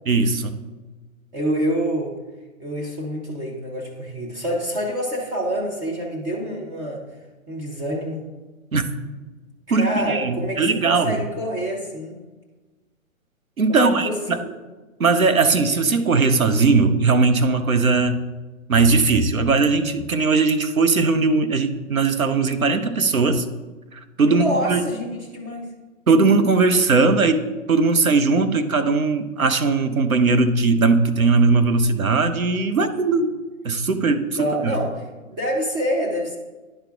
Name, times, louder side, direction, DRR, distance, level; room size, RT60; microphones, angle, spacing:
voice 1, 0.1-0.5 8.7-8.8 9.7-11.2 13.6-14.4 15.0-18.2 18.7-23.4 23.9-24.9 26.1-33.3 33.6-34.3 34.6-34.8, right 4 dB, 90° right, 8 dB, 0.8 m, -19 dB
voice 2, 1.3-2.1 2.6-7.0 7.5-8.2 9.7-12.2 13.7-14.5 24.2-25.7 34.4-36.4, equal, 15° right, -2 dB, 0.6 m, -27 dB
10.5 x 4.4 x 3.5 m, 1.2 s
figure-of-eight pair, 130°, 41 cm